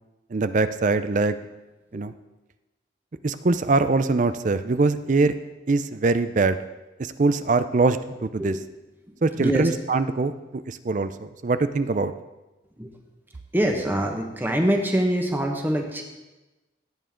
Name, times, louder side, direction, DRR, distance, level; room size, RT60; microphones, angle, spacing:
voice 1, 0.3-1.4 1.9-2.1 3.2-5.3 5.7-6.6 7.0-8.5 9.2-12.1, right 3 dB, 45° right, 12 dB, 0.5 m, -23 dB
voice 2, 9.4-9.7 12.8-12.9 13.5-16.0, right 1 dB, 10° right, 2 dB, 1.4 m, -24 dB
16.5 x 9.2 x 3.8 m, 1.1 s
head